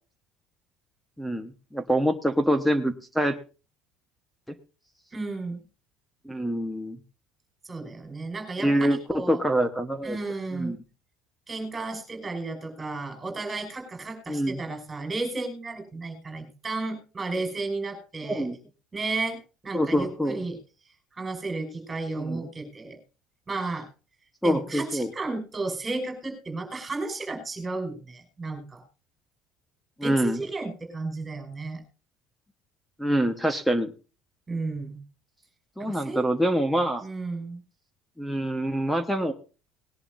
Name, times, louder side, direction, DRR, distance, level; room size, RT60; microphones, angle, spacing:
voice 1, 1.2-3.4 4.5-4.6 6.2-7.0 8.6-10.2 10.5-10.8 14.3-14.6 18.3-18.6 19.7-20.4 22.2-22.5 24.4-25.1 30.0-30.4 33.0-33.9 35.8-37.0 38.2-39.3, equal, ahead, 9 dB, 1.2 m, -25 dB
voice 2, 5.1-5.6 7.6-9.4 10.0-10.7 11.5-18.5 18.9-20.6 21.1-23.0 23.5-23.9 24.4-28.8 30.0-31.8 34.5-35.0 35.8-36.2 37.0-37.6, right 3 dB, 15° right, 5 dB, 5.2 m, -33 dB
20.0 x 11.0 x 2.7 m, 0.34 s
cardioid pair, 155°, 0 cm